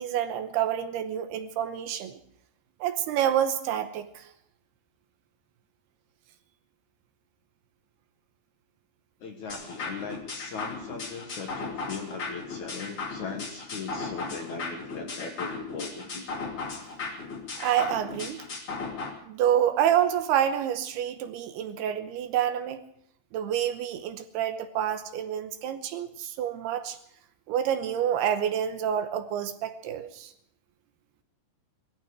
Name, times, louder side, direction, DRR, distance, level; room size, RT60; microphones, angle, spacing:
voice 1, 0.0-2.2 2.8-4.3 17.6-18.4 19.2-22.8 23.3-27.0 27.5-30.3, right 10 dB, 75° right, 9 dB, 2.8 m, -28 dB
voice 2, 9.2-16.3, left 4 dB, 55° left, 3 dB, 2.3 m, -38 dB
sound 1, 9.5-19.1, left 4 dB, 35° left, 3.1 m, -36 dB
19.5 x 14.5 x 4.8 m, 0.69 s
omnidirectional pair, 4.9 m